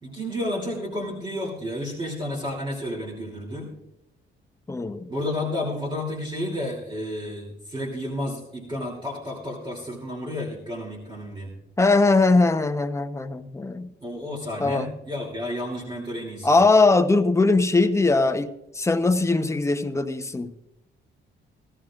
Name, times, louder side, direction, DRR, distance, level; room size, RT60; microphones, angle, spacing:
voice 1, 0.0-3.7 5.1-11.5 14.0-16.5, left 1 dB, 25° right, -2 dB, 2.9 m, -31 dB
voice 2, 4.7-5.1 11.8-13.9 14.6-14.9 16.4-20.5, left 3 dB, 15° left, 7 dB, 0.9 m, -20 dB
17.5 x 14.0 x 2.5 m, 0.88 s
cardioid pair, 90°, 20 cm